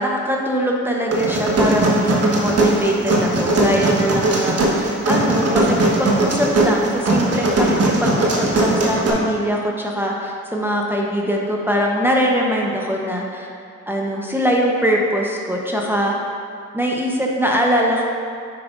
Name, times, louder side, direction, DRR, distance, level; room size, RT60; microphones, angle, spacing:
voice 1, 0.0-13.5 13.9-16.1 16.7-18.0, equal, 5° right, -2 dB, 0.9 m, -22 dB
sound 1, 1.1-9.1, right 1 dB, 50° right, 1.3 m, -19 dB
8.4 x 6.0 x 2.5 m, 2.2 s
supercardioid pair, 55°, 30 cm